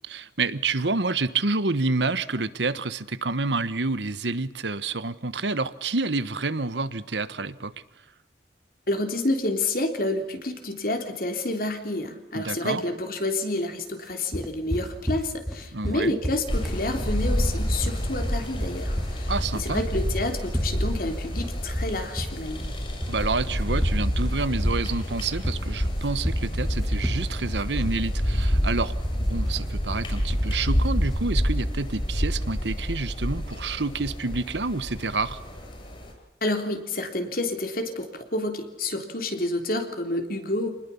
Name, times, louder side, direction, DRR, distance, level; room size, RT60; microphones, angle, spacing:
voice 1, 0.1-7.7 12.3-12.8 15.7-16.2 19.3-19.8 23.1-28.9 29.3-35.4, right 3 dB, 85° right, 14 dB, 1.3 m, -28 dB
voice 2, 8.9-22.7 36.4-40.7, left 2 dB, 55° left, 6 dB, 3.5 m, -29 dB
sound 1, 14.3-31.3, equal, ahead, 2.2 m, -32 dB
sound 2, 16.5-36.1, equal, 30° left, 6.8 m, -28 dB
27.5 x 20.0 x 7.2 m, 0.99 s
head